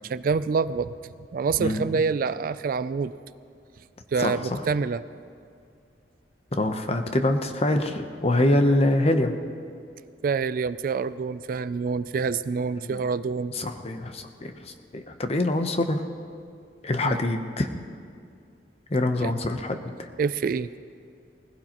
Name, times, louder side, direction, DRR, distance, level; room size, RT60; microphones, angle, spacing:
voice 1, 0.0-0.9 1.3-3.1 4.1-5.0 10.2-13.5 17.0-17.2 19.2-19.3 20.2-20.7, right 5 dB, 50° right, 15 dB, 0.3 m, -26 dB
voice 2, 4.2-4.6 6.5-9.3 12.8-13.0 13.5-16.0 16.8-17.7 18.9-20.1, left 1 dB, 35° left, 7 dB, 0.8 m, -25 dB
20.0 x 16.0 x 3.0 m, 2.3 s
head